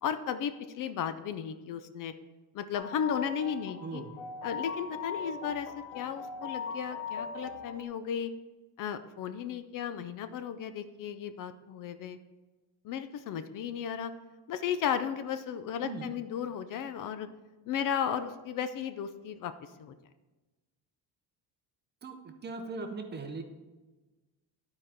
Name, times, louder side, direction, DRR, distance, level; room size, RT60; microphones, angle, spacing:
voice 1, 0.0-2.1 2.5-4.0 4.4-5.7 5.9-8.3 8.8-12.2 12.8-14.1 14.5-17.3 17.7-19.5 19.8-19.9, left 8 dB, 50° left, 11 dB, 0.5 m, -34 dB
sound 1, 2.7-7.8, left 5 dB, 70° left, 1.5 m, -39 dB
voice 2, 3.8-4.1 15.8-16.1 22.0-23.4, right 3 dB, 25° right, 6 dB, 0.6 m, -39 dB
11.5 x 4.8 x 4.3 m, 1.2 s
cardioid pair, 170°, 42 cm